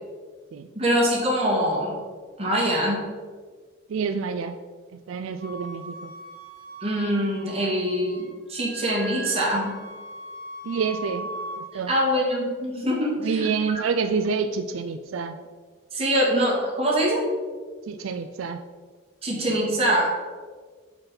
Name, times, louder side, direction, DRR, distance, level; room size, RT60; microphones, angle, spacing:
voice 1, 0.7-2.0 2.4-3.0 6.8-9.7 11.9-13.5 15.9-17.2 19.2-20.2, equal, 30° right, -4 dB, 2.0 m, -24 dB
voice 2, 3.9-4.6 4.9-6.1 10.6-11.3 11.6-11.9 13.2-15.4 17.9-18.6, right 5 dB, 85° right, 9 dB, 0.4 m, -28 dB
Wind instrument woodwind instrument, 5.4-8.3 8.6-11.6, right 1 dB, 45° right, 1.5 m, -39 dB
5.8 x 5.7 x 5.3 m, 1.5 s
head